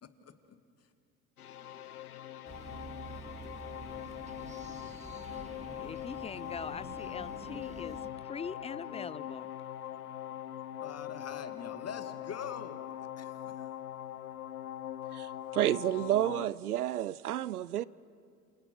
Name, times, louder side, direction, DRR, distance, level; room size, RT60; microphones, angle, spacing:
voice 1, 0.0-0.6 10.8-12.8 13.2-13.7, left 7 dB, 35° left, 2.1 m, -44 dB
sound 1, 1.4-16.5, left 11 dB, 90° left, 0.7 m, -42 dB
sound 2, 2.5-8.1, right 3 dB, 15° right, 2.3 m, -48 dB
voice 2, 5.8-9.5, left 6 dB, 15° left, 0.6 m, -42 dB
voice 3, 15.1-17.8, right 12 dB, 90° right, 0.6 m, -30 dB
28.5 x 27.5 x 6.2 m
hypercardioid pair, 65°, 44 cm